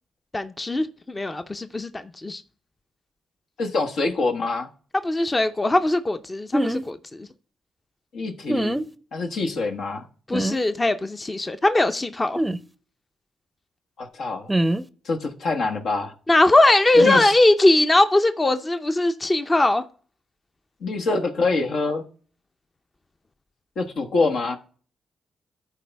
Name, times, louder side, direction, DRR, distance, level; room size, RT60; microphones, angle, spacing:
voice 1, 0.3-2.4 5.0-7.3 10.3-12.4 16.3-19.8, left 2 dB, 25° left, 0.6 m, -20 dB
voice 2, 3.6-4.7 8.1-8.8 9.1-10.1 14.0-14.5 15.0-16.1 17.0-17.3 20.8-22.0 23.8-24.6, left 3 dB, 75° left, 1.3 m, -25 dB
sound 1, 6.5-6.8 8.5-8.9 10.3-10.6 12.4-12.6 14.5-14.8 17.0-17.2, right 1 dB, 15° right, 0.6 m, -23 dB
13.0 x 4.6 x 3.4 m
cardioid pair, 60°, 0 cm